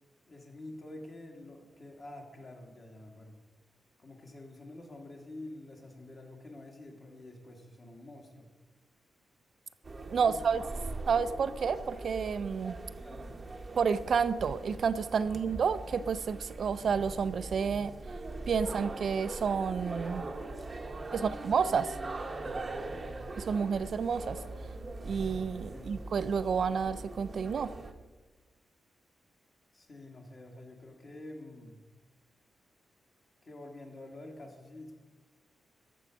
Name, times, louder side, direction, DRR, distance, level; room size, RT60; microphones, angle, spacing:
voice 1, 0.3-3.4 4.0-8.5 10.1-10.9 13.0-13.4 15.2-15.4 20.8-21.4 22.4-23.5 25.7-25.9 29.7-31.8 33.4-34.9, left 2 dB, 40° left, 1 dB, 1.7 m, -48 dB
sound 1, 9.8-27.9, right 2 dB, 25° right, 0.8 m, -41 dB
voice 2, 10.1-10.6 11.1-12.8 13.8-17.9 18.5-20.2 21.4-22.0 23.5-24.4 25.1-27.7, right 6 dB, 55° right, 13 dB, 0.3 m, -30 dB
13.5 x 4.6 x 6.2 m, 1.2 s
wide cardioid pair, 140°, 0 cm